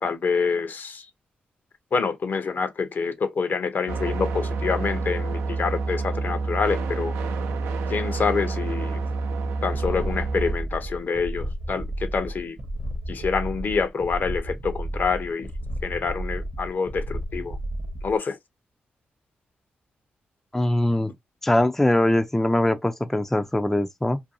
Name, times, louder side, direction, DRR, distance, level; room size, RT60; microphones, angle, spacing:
voice 1, 0.0-1.1 1.9-7.1 7.9-9.0 9.6-12.6 13.1-15.5 15.8-17.6 18.0-18.4, left 5 dB, 55° left, 0.6 m, -26 dB
sound 1, 3.9-10.5, right 3 dB, 85° right, 0.5 m, -28 dB
sound 2, 9.7-18.2, right 1 dB, 30° right, 0.7 m, -32 dB
voice 2, 20.5-21.1 21.4-24.2, left 1 dB, 10° left, 0.4 m, -22 dB
2.6 x 2.3 x 2.6 m
cardioid pair, 60°, 4 cm